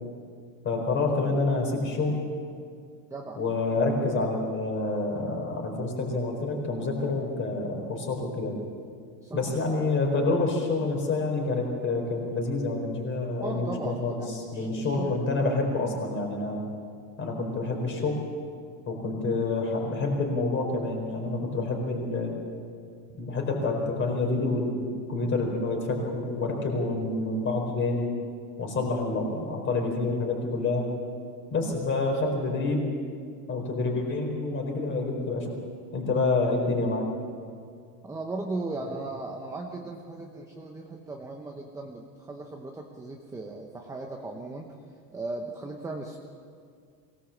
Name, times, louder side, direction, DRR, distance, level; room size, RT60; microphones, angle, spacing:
voice 1, 0.6-2.2 3.4-8.5 9.3-16.6 17.2-18.2 18.9-22.4 23.2-28.1 28.6-30.9 31.5-32.9 33.5-35.5 35.9-37.1, left 3 dB, 25° left, 1 dB, 4.4 m, -28 dB
voice 2, 13.4-15.1 38.0-44.7 45.1-46.2, right 2 dB, 5° right, 1 dB, 0.8 m, -37 dB
23.0 x 19.0 x 7.2 m, 2.1 s
cardioid pair, 170°, 47 cm